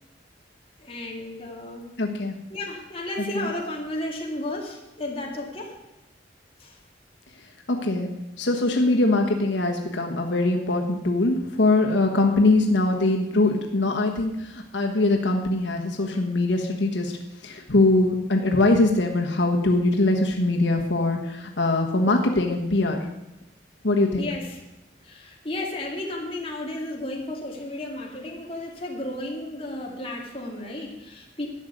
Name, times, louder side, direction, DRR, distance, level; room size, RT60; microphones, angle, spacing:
voice 1, 0.8-2.0 2.5-5.7 6.6-6.8 24.2-24.6 25.0-31.5, left 1 dB, 30° left, -1 dB, 2.3 m, -33 dB
voice 2, 2.0-2.4 3.3-3.5 7.7-8.1 8.4-17.1 17.4-23.1 23.8-24.3, left 2 dB, 80° left, 2 dB, 1.3 m, -22 dB
11.5 x 6.5 x 9.3 m, 0.93 s
head